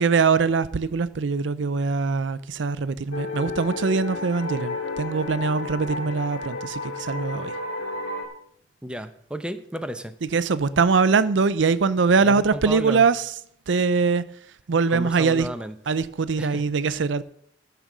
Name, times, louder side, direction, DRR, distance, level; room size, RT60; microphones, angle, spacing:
voice 1, 0.0-7.6 10.3-13.3 13.7-14.3 14.7-15.5 15.9-17.2, right 4 dB, 80° right, 0.5 m, -22 dB
sound 1, 3.1-8.3, left 2 dB, 75° left, 2.3 m, -32 dB
voice 2, 8.8-10.2 12.2-13.1 14.9-15.8 16.4-16.6, equal, 5° right, 0.7 m, -33 dB
12.5 x 6.9 x 6.1 m
head